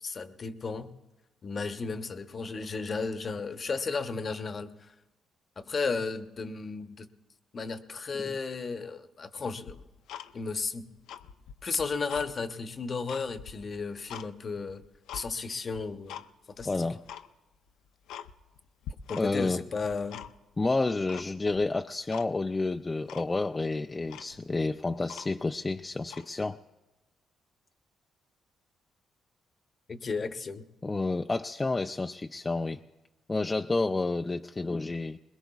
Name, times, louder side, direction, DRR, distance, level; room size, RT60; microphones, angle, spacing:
voice 1, 0.0-0.9 1.4-4.7 5.6-7.1 7.5-9.8 10.3-10.9 11.6-14.8 15.1-16.2 16.6-16.9 19.1-20.2 29.9-30.7, left 4 dB, 40° left, 9 dB, 0.9 m, -34 dB
Tick-tock, 9.7-10.7 11.0-12.3 12.7-14.3 14.7-15.3 15.7-16.3 16.6-16.7 17.0-17.3 17.7-17.8 18.1-18.6 18.8-19.5 19.8-20.6 21.1-21.7 22.1-22.3 22.6-22.7 23.1-23.3 23.8-23.9 24.1-25.6 26.0-26.3, left 9 dB, 90° left, 0.5 m, -44 dB
voice 2, 16.7-17.0 19.2-19.6 20.6-26.6 30.8-32.8 33.3-35.2, left 3 dB, 20° left, 6 dB, 0.4 m, -30 dB
21.5 x 21.0 x 2.4 m, 1.1 s
cardioid pair, 90°, 0 cm